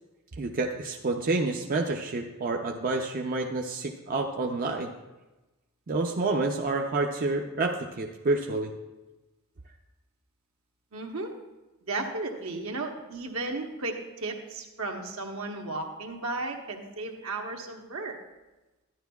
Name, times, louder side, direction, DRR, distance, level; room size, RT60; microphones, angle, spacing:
voice 1, 0.4-4.9 5.9-8.7, right 3 dB, 40° right, 2 dB, 0.5 m, -28 dB
voice 2, 10.9-11.3 11.8-18.1, right 2 dB, 75° right, 2 dB, 1.1 m, -34 dB
11.5 x 10.5 x 2.3 m, 1.1 s
head